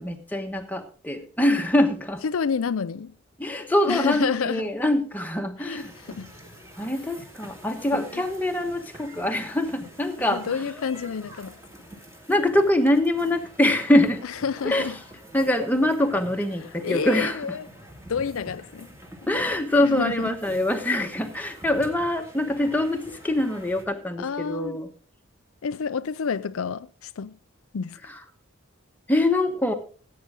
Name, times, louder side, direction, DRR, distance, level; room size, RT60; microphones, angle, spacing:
voice 1, 0.0-2.2 3.4-5.9 6.8-10.6 12.3-14.2 14.6-14.9 15.3-17.4 19.3-24.9 28.0-28.2 29.1-29.7, left 1 dB, 10° left, 1.2 m, -24 dB
voice 2, 2.2-3.1 3.9-4.7 5.6-6.3 8.1-8.2 10.2-11.6 14.4-14.9 16.8-17.7 18.1-18.9 19.8-20.3 24.2-24.8 25.6-27.3 27.7-28.0, left 6 dB, 80° left, 0.5 m, -29 dB
sound 1, 5.8-23.9, equal, 15° right, 2.1 m, -46 dB
16.0 x 8.6 x 3.8 m
head